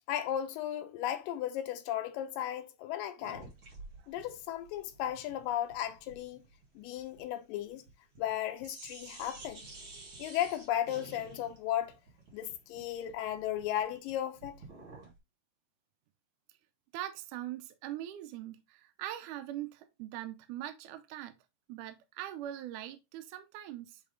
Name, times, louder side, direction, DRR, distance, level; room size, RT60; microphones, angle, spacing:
voice 1, 0.1-3.5 4.1-6.4 6.8-7.8 8.2-9.7 10.2-11.9 12.3-14.6, left 11 dB, 90° left, 2.4 m, -35 dB
sound 1, 3.2-8.3 8.6-15.2, right 3 dB, 45° right, 2.4 m, -52 dB
voice 2, 16.9-21.3 21.7-24.0, right 13 dB, 75° right, 2.1 m, -42 dB
8.3 x 3.4 x 3.8 m
omnidirectional pair, 3.9 m